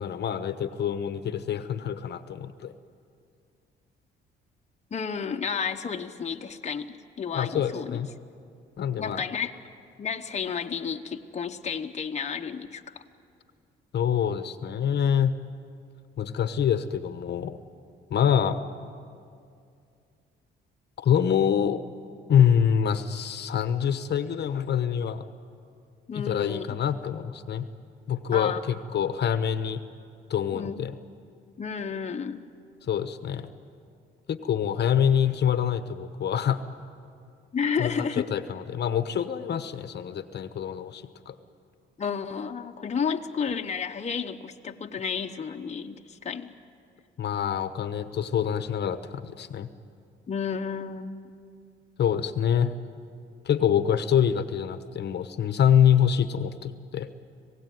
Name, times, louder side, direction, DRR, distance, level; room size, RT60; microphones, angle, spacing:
voice 1, 0.0-2.7 7.3-8.1 8.8-9.2 13.9-15.4 16.2-17.6 18.1-18.6 21.0-21.8 22.3-25.3 26.1-27.7 28.1-29.8 30.3-31.0 32.9-33.5 34.3-36.6 37.8-37.9 38.2-41.3 47.2-49.7 52.0-52.7 53.4-57.1, left 8 dB, 60° left, 11 dB, 1.1 m, -25 dB
voice 2, 4.9-8.0 9.0-9.6 10.0-13.0 26.1-26.6 28.3-28.6 30.5-30.8 31.6-32.4 37.5-38.3 42.0-46.5 50.3-51.1, left 6 dB, 35° left, 4 dB, 1.0 m, -31 dB
26.0 x 17.0 x 9.3 m, 2.4 s
cardioid pair, 90°, 20 cm